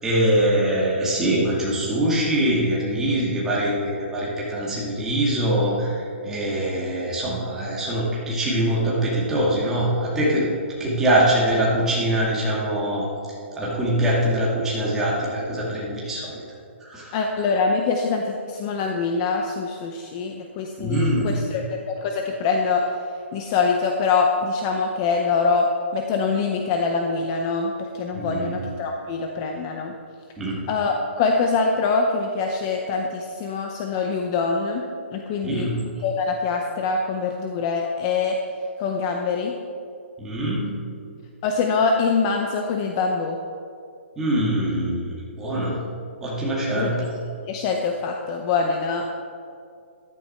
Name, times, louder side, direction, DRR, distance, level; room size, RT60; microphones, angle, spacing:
voice 1, 0.0-10.5 10.8-13.1 13.5-16.4 16.8-17.2 20.8-21.4 28.1-28.6 30.4-30.7 35.4-35.8 40.2-40.7 44.2-45.8 46.2-47.1, right 1 dB, 5° right, -6 dB, 2.2 m, -23 dB
voice 2, 17.1-21.6 21.9-22.8 23.3-25.7 25.9-29.9 30.7-34.8 35.1-35.7 36.0-38.4 38.8-39.5 41.4-43.4 46.8-46.9 47.5-49.1, left 4 dB, 20° left, 2 dB, 0.7 m, -24 dB
14.0 x 12.5 x 4.4 m, 2.4 s
hypercardioid pair, 175°, 7 cm